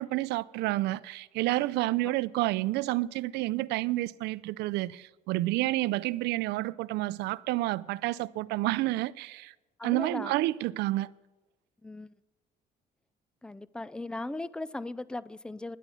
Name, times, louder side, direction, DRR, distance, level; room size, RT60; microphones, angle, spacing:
voice 1, 0.0-9.5 9.8-11.1, right 18 dB, 85° right, 0.4 m, -29 dB
voice 2, 9.8-10.3 11.8-12.1 13.4-15.8, left 2 dB, 5° left, 0.3 m, -38 dB
11.0 x 9.1 x 6.8 m
cardioid pair, 110°, 17 cm